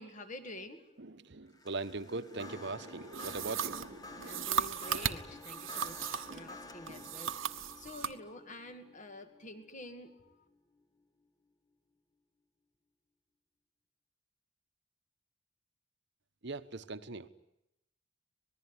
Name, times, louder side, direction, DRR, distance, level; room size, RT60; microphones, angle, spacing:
voice 1, 0.0-0.8 4.2-10.3, left 1 dB, 40° left, 7 dB, 2.2 m, -48 dB
voice 2, 1.0-4.6 5.8-6.5 6.8-7.1 7.5-7.6 16.4-17.3, right 3 dB, 60° right, 11 dB, 1.1 m, -42 dB
sound 1, 1.5-10.8, left 2 dB, 20° left, 1.4 m, -52 dB
sound 2, 3.1-6.4 6.9-8.2, right 7 dB, 75° right, 1.2 m, -36 dB
26.0 x 20.0 x 9.8 m, 0.84 s
head